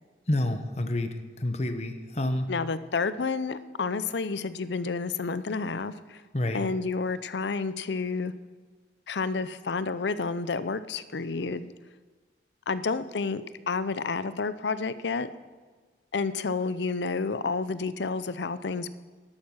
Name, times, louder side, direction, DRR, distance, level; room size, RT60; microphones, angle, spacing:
voice 1, 0.3-2.5 6.3-6.6, left 1 dB, 35° left, 8 dB, 1.0 m, -29 dB
voice 2, 2.5-6.2 6.5-8.3 9.1-11.7 12.7-15.3 16.1-18.9, left 4 dB, 75° left, 14 dB, 0.6 m, -30 dB
12.0 x 11.5 x 6.3 m, 1.4 s
head